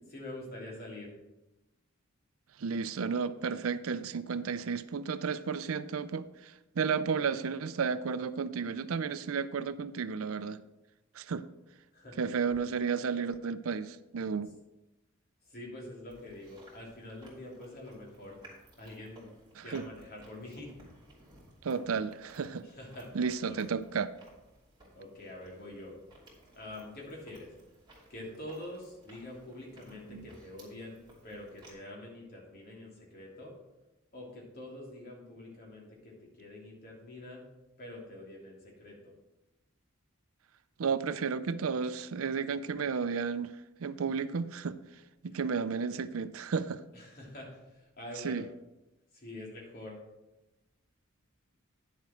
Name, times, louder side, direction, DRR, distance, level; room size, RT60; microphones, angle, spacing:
voice 1, 0.1-1.2 11.9-12.2 15.5-18.4 18.8-19.3 19.6-20.7 22.6-23.2 23.4-23.6 24.9-25.9 26.5-27.5 28.1-33.5 34.1-37.4 37.8-39.1 45.3-45.4 46.9-48.5 49.1-50.0, left 1 dB, 45° left, -2 dB, 3.0 m, -46 dB
voice 2, 2.6-10.6 11.1-11.4 12.2-14.5 19.6-19.8 21.6-22.7 23.1-24.1 40.8-43.5 43.8-44.8 45.2-46.8 48.2-48.4, right 5 dB, 80° right, 14 dB, 0.5 m, -33 dB
Chewing mastication, 16.1-31.7, right 2 dB, 20° right, 3.0 m, -58 dB
10.0 x 7.3 x 4.4 m, 1.0 s
head